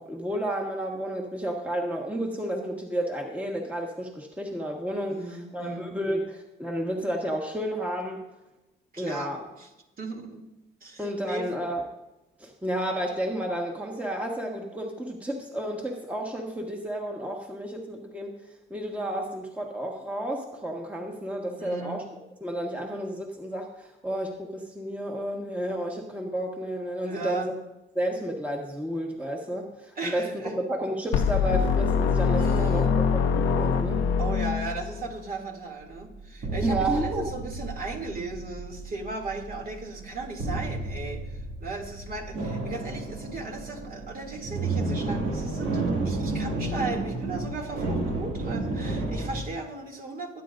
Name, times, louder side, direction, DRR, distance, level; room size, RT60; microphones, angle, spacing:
voice 1, 0.0-8.2 9.0-9.5 11.0-11.8 12.4-18.4 18.7-22.0 22.4-27.5 27.9-32.8 33.1-34.0 36.6-37.3, right 1 dB, 5° right, 0 dB, 1.5 m, -31 dB
voice 2, 5.1-5.9 8.9-9.7 10.0-10.5 10.8-11.5 21.6-22.0 27.1-27.5 30.0-30.6 32.3-32.9 34.2-50.4, right 3 dB, 45° right, 0 dB, 2.7 m, -36 dB
sound 1, 31.1-35.1, left 6 dB, 80° left, 0.8 m, -24 dB
sound 2, 35.8-49.4, right 2 dB, 75° right, 2.4 m, -32 dB
21.5 x 9.3 x 2.6 m, 0.99 s
cardioid pair, 90°, 20 cm